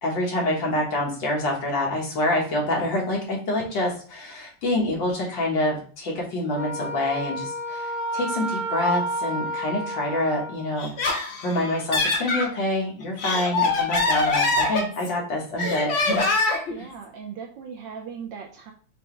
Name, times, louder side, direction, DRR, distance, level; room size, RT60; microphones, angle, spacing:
voice 1, 0.0-10.9 11.4-16.3 16.8-16.9, left 1 dB, 60° left, -2 dB, 1.9 m, -26 dB
Wind instrument woodwind instrument, 6.6-10.7, equal, 50° right, 1.6 m, -31 dB
Laughter, 10.8-12.5 13.0-15.2 15.6-16.7, left 3 dB, 80° left, 0.6 m, -24 dB
voice 2, 16.7-18.7, right 6 dB, 75° right, 2 dB, 1.1 m, -38 dB
5.5 x 2.8 x 3.2 m, 0.42 s
omnidirectional pair, 2.3 m